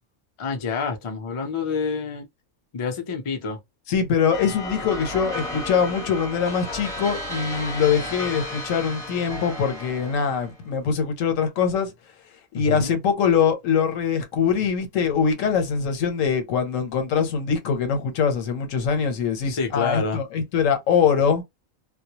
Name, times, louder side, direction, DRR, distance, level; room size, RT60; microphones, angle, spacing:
voice 1, 0.4-2.3 2.7-3.6 12.5-13.0 19.5-20.2, left 5 dB, 40° left, 0.5 m, -28 dB
voice 2, 3.9-11.9 12.5-21.4, left 6 dB, 85° left, 1.1 m, -23 dB
sound 1, 4.3-10.5, left 1 dB, 5° left, 0.8 m, -33 dB
2.3 x 2.1 x 2.8 m
omnidirectional pair, 1.3 m